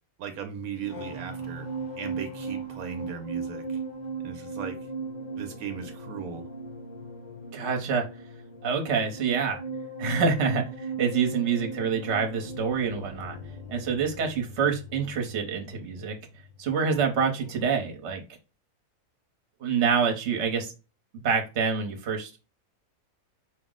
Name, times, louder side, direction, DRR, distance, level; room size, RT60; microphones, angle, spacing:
voice 1, 0.2-1.7 2.0-3.8 4.2-4.8 5.4-6.4, right 7 dB, 85° right, 6 dB, 1.0 m, -37 dB
sound 1, 0.6-17.2 17.5-17.8, right 3 dB, 40° left, 0.7 m, -38 dB
voice 2, 7.5-8.1 8.6-9.6 10.0-13.4 13.7-16.2 16.6-18.2 19.6-20.7 21.2-22.4, right 6 dB, 55° right, 3 dB, 1.1 m, -26 dB
4.7 x 2.0 x 3.7 m, 0.30 s
omnidirectional pair, 1.5 m